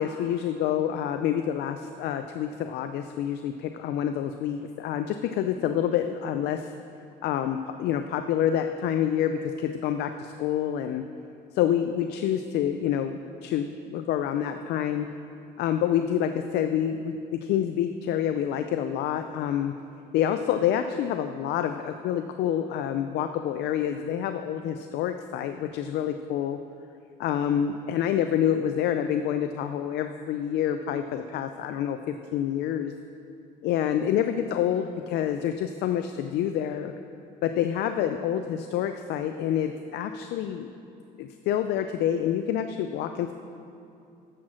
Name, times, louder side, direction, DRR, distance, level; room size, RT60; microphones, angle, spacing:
voice 1, 0.0-6.7 7.2-11.0 11.5-15.1 15.6-19.7 20.1-26.6 27.2-32.9 33.6-36.9 37.4-40.7 41.2-43.3, left 10 dB, 80° left, 8 dB, 0.4 m, -27 dB
9.9 x 6.3 x 6.3 m, 2.7 s
cardioid pair, 110°, 17 cm